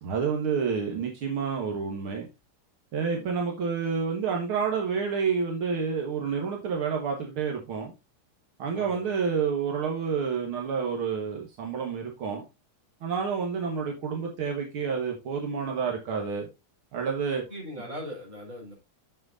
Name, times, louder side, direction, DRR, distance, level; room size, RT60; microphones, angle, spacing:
voice 1, 0.0-2.3 2.9-7.9 8.6-12.4 13.0-16.5 16.9-17.4, right 6 dB, 75° right, 2.3 m, -29 dB
voice 2, 8.7-9.1 17.5-18.7, equal, 40° right, 5.0 m, -39 dB
8.7 x 7.4 x 2.6 m
omnidirectional pair, 2.4 m